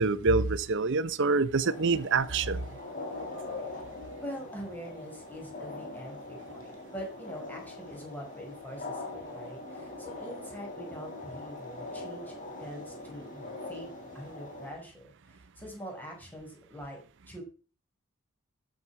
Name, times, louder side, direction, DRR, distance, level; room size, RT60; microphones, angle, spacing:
voice 1, 0.0-2.6, right 4 dB, 55° right, 0.7 m, -26 dB
sound 1, 1.6-14.7, left 2 dB, 40° left, 3.3 m, -42 dB
voice 2, 4.2-17.0 17.3-17.4, equal, 10° left, 5.1 m, -44 dB
12.5 x 7.2 x 5.8 m
head